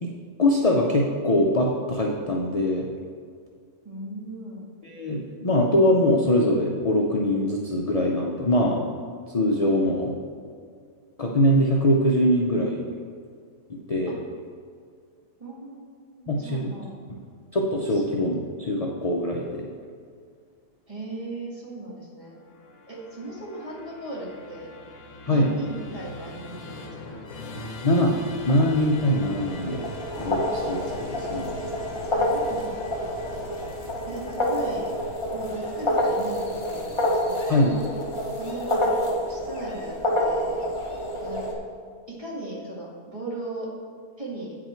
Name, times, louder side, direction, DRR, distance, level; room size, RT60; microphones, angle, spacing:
voice 1, 0.4-2.9 4.8-8.8 9.3-10.1 11.2-12.8 13.7-14.2 16.3-16.7 17.5-19.6 25.3-25.6 27.8-28.1 28.4-29.8 30.2-31.6 37.5-37.8, left 1 dB, 50° left, -1 dB, 0.4 m, -22 dB
voice 2, 3.8-4.7 9.6-10.2 14.1-14.2 15.4-16.9 17.9-18.0 20.9-22.4 22.9-24.7 25.3-27.2 30.5-30.6 32.1-33.3 34.1-34.9 35.3-37.7 38.4-40.6 41.2-41.5 42.1-43.7 44.2-44.6, right 2 dB, 20° right, -5 dB, 1.9 m, -38 dB
Musical instrument, 22.3-37.7, left 2 dB, 75° left, 1.4 m, -42 dB
sound 1, 28.5-41.5, left 1 dB, 20° left, 1.1 m, -28 dB
8.8 x 6.2 x 4.4 m, 2.1 s
omnidirectional pair, 1.6 m